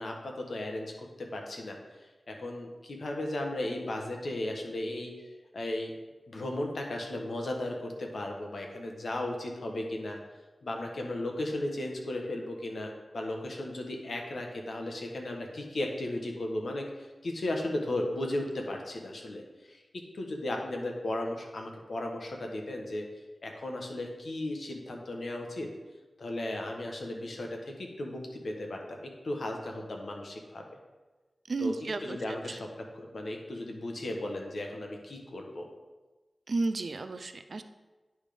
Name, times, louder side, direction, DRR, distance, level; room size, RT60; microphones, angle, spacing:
voice 1, 0.0-1.8 2.3-5.3 5.5-5.9 6.3-10.2 10.6-19.8 20.1-23.0 23.4-25.7 26.2-30.6 31.6-31.7 32.0-32.7 32.9-35.7, left 1 dB, 65° left, 2 dB, 1.1 m, -35 dB
voice 2, 31.5-32.4 36.5-37.6, right 3 dB, 55° right, 9 dB, 0.4 m, -32 dB
9.9 x 3.5 x 5.1 m, 1.2 s
wide cardioid pair, 110°, 0 cm